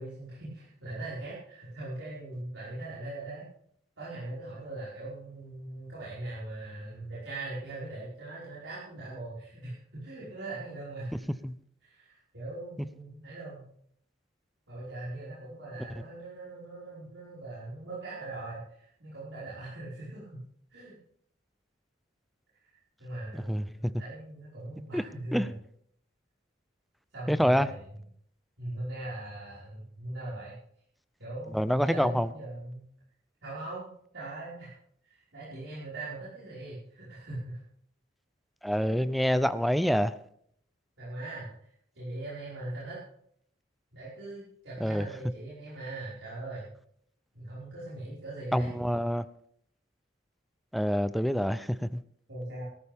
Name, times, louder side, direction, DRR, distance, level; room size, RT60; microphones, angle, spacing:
voice 1, 0.0-3.4 4.0-11.2 11.8-13.7 14.7-20.4 20.7-20.9 23.0-25.5 27.1-27.8 28.6-30.6 31.2-32.8 33.4-33.9 34.1-34.7 35.1-37.6 38.6-39.0 41.0-41.5 41.9-43.0 43.9-46.7 47.3-48.7 52.3-52.6, right 2 dB, 75° right, -9 dB, 5.2 m, -40 dB
voice 2, 23.3-23.6 24.9-25.0 25.3-25.5 27.3-27.7 31.5-32.3 38.6-40.1 44.8-45.1 48.5-49.3 50.7-52.0, equal, ahead, 13 dB, 0.5 m, -26 dB
18.5 x 13.0 x 3.6 m, 0.66 s
head